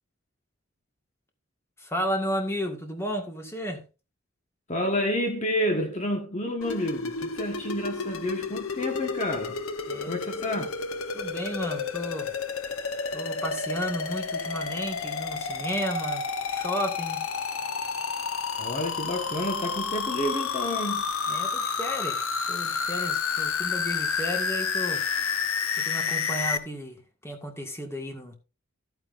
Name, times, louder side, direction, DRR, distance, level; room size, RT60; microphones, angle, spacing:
voice 1, 1.8-3.8 9.9-10.7 11.1-12.3 13.1-17.3 21.3-25.0 25.7-28.4, equal, 10° left, 1.8 m, -33 dB
voice 2, 4.7-9.6 10.1-10.7 18.6-21.1, left 1 dB, 30° left, 1.5 m, -29 dB
sound 1, 6.6-26.6, left 5 dB, 75° left, 1.0 m, -30 dB
14.0 x 8.9 x 2.6 m
head